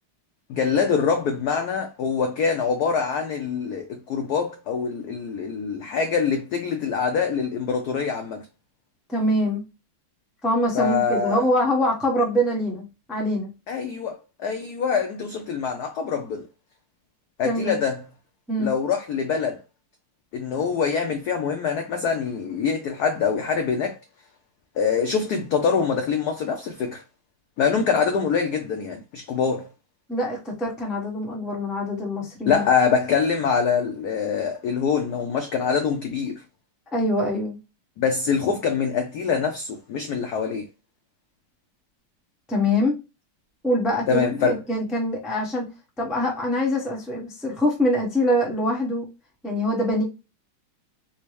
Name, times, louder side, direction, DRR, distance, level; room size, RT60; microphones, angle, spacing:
voice 1, 0.5-8.5 10.7-11.4 13.7-16.5 17.4-18.0 18.6-19.6 20.3-24.0 24.8-27.0 27.6-29.7 32.5-36.4 38.0-40.7 44.1-44.6, left 6 dB, 75° left, 0.8 m, -24 dB
voice 2, 9.1-9.6 10.4-13.5 17.4-17.8 18.5-18.7 30.1-32.6 36.9-37.6 42.5-43.0 43.6-45.7 46.0-49.1 49.4-50.0, left 1 dB, ahead, 0.4 m, -24 dB
4.3 x 2.0 x 3.0 m
omnidirectional pair, 2.3 m